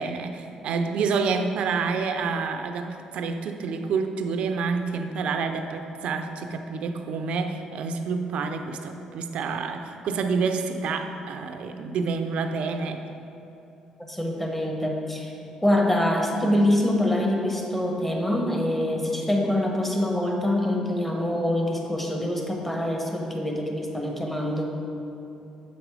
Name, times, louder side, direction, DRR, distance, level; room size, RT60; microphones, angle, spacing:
voice 1, 0.0-13.0, right 5 dB, 70° right, 7 dB, 0.5 m, -28 dB
voice 2, 14.0-15.3 15.6-24.8, left 1 dB, 10° left, 0 dB, 1.2 m, -25 dB
7.3 x 5.2 x 4.8 m, 2.9 s
cardioid pair, 75°, 2 cm